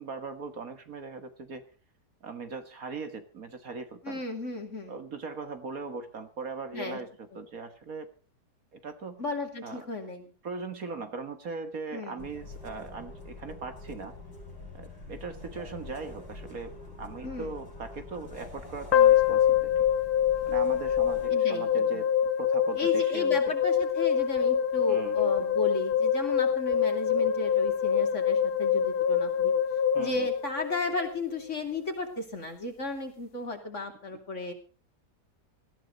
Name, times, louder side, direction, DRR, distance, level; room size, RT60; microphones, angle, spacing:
voice 1, 0.0-1.7 2.2-4.2 4.9-8.1 8.7-9.2 9.6-9.8 10.4-14.2 14.7-16.7 17.0-19.7 20.5-22.1 22.4-23.4 24.9-25.3 29.9-30.3, right 4 dB, 55° right, 8 dB, 1.9 m, -39 dB
voice 2, 4.0-5.0 6.7-7.0 9.2-10.3 11.9-12.3 17.2-17.5 21.3-22.0 22.7-29.5 30.0-34.5, left 3 dB, 45° left, 4 dB, 3.1 m, -35 dB
sound 1, 12.2-21.3, left 2 dB, 85° left, 6.0 m, -45 dB
sound 2, 18.9-31.1, left 8 dB, 65° left, 1.7 m, -25 dB
19.5 x 14.0 x 3.9 m, 0.35 s
omnidirectional pair, 1.8 m